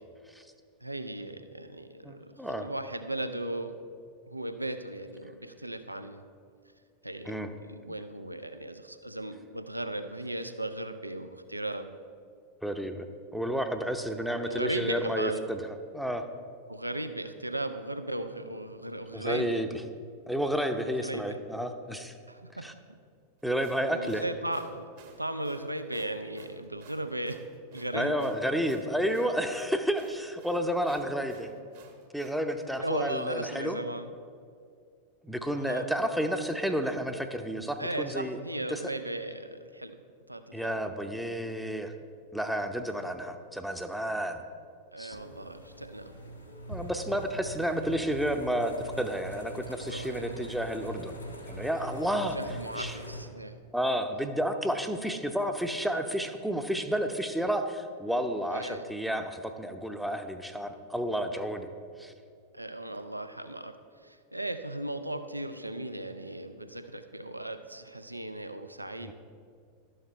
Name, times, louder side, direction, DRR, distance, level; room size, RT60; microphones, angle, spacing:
voice 1, 0.8-3.7 4.3-6.2 7.0-11.9 14.5-15.4 16.7-19.7 20.8-21.4 22.3-23.0 23.8-24.9 25.2-27.4 27.7-28.3 32.8-34.1 35.6-35.9 37.8-40.0 40.3-40.8 44.9-46.1 49.8-50.5 52.3-53.6 58.5-58.9 62.5-63.7 64.0-69.1, right 1 dB, 85° right, 9 dB, 0.5 m, -36 dB
voice 2, 2.0-2.7 7.3-7.5 7.9-8.0 12.6-13.1 13.3-15.6 15.9-16.3 19.1-19.7 20.3-22.1 22.6-22.7 23.4-24.2 27.9-31.5 32.1-33.8 35.2-38.4 38.7-38.8 40.5-41.9 42.3-44.4 45.0-45.2 46.7-51.2 51.5-52.4 52.8-53.0 53.7-61.7 62.0-62.1 69.0-69.1, equal, ahead, 7 dB, 0.7 m, -31 dB
sound 1, 23.4-32.4, right 5 dB, 50° right, 1.2 m, -53 dB
sound 2, 45.1-53.2, equal, 85° left, 1.3 m, -43 dB
12.0 x 6.6 x 4.4 m, 2.2 s
figure-of-eight pair, 90°, 0 cm